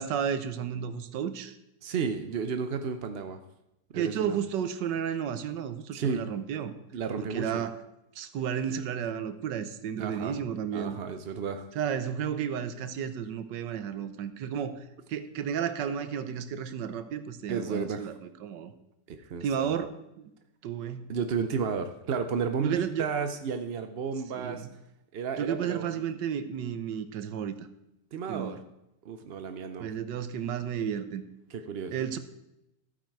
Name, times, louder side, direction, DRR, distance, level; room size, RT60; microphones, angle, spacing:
voice 1, 0.0-1.5 3.9-6.7 7.2-7.8 8.1-11.0 11.7-14.8 15.1-18.1 18.4-18.7 19.4-20.3 20.6-21.1 22.6-23.1 24.3-24.6 25.4-27.7 28.3-28.6 29.8-31.2 31.9-32.2, right 8 dB, 85° right, 11 dB, 1.5 m, -32 dB
voice 2, 1.8-3.4 3.9-4.4 5.9-6.2 6.9-7.6 10.0-10.4 10.7-11.7 17.5-18.1 19.1-19.7 21.1-24.7 25.1-25.9 28.1-28.6 29.0-29.9 31.5-32.1, right 6 dB, 60° right, 7 dB, 0.6 m, -32 dB
14.0 x 8.9 x 4.6 m, 0.88 s
omnidirectional pair, 1.9 m